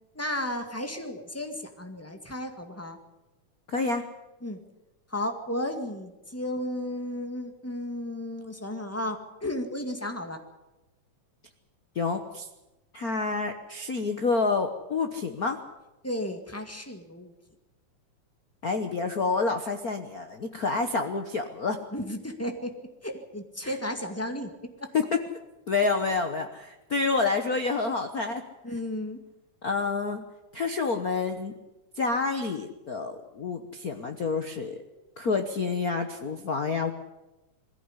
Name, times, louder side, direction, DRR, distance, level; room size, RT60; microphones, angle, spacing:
voice 1, 0.1-3.0 4.4-4.6 5.1-10.4 16.0-17.3 21.9-22.8 23.0-24.5 24.8-24.9 28.6-29.2, left 1 dB, 5° left, 5 dB, 1.3 m, -34 dB
voice 2, 3.7-4.0 11.9-12.5 12.9-15.6 18.6-21.8 23.6-23.7 24.9-25.0 25.7-28.4 29.6-30.2 30.5-31.5 32.0-34.8 35.2-36.9, left 4 dB, 65° left, 6 dB, 0.8 m, -28 dB
21.5 x 15.5 x 9.8 m, 1.0 s
omnidirectional pair, 3.4 m